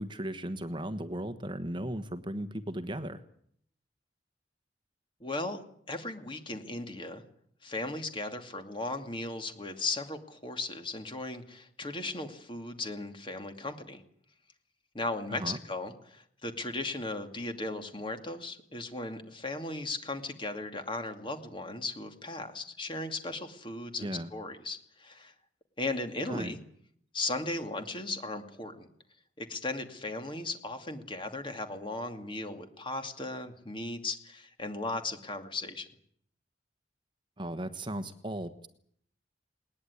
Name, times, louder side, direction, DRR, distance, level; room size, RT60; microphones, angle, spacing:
voice 1, 0.0-3.2 15.3-15.6 24.0-24.3 26.3-26.5 37.4-38.7, right 1 dB, 25° right, 10 dB, 1.2 m, -36 dB
voice 2, 5.2-5.6 5.9-7.2 7.6-14.0 14.9-25.3 25.8-26.6 27.1-28.9 29.4-35.9, left 2 dB, 30° left, 7 dB, 2.5 m, -37 dB
20.0 x 19.5 x 9.7 m, 0.66 s
head